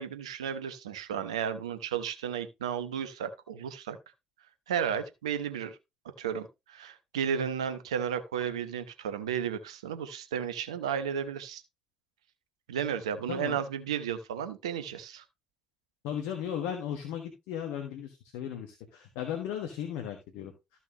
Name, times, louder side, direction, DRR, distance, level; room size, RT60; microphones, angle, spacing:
voice 1, 0.0-4.0 4.7-5.8 6.2-11.6 12.7-15.2, right 8 dB, 85° right, 0.9 m, -33 dB
voice 2, 13.3-13.6 16.0-20.5, left 9 dB, 75° left, 1.4 m, -36 dB
13.5 x 5.9 x 2.9 m
hypercardioid pair, 45°, 3 cm